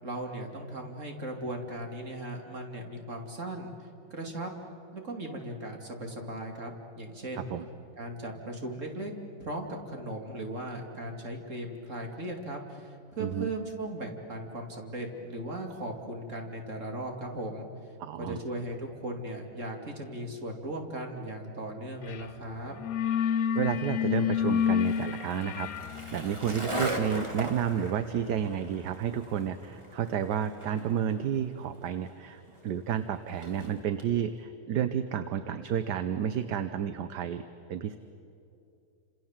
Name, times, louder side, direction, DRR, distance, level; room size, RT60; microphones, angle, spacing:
voice 1, 0.0-3.7 4.1-4.5 4.9-7.5 8.0-9.1 9.4-17.7 18.2-22.8, right 1 dB, 40° right, 2 dB, 3.1 m, -37 dB
voice 2, 18.0-18.4 23.5-37.4 37.7-38.0, right 8 dB, 60° right, 11 dB, 1.3 m, -31 dB
sound 1, 22.1-22.3 22.6-29.2, left 9 dB, 60° left, 1.0 m, -31 dB
Skateboard, 23.6-34.1, right 1 dB, 15° right, 2.7 m, -40 dB
29.5 x 27.0 x 7.4 m, 2.7 s
omnidirectional pair, 2.2 m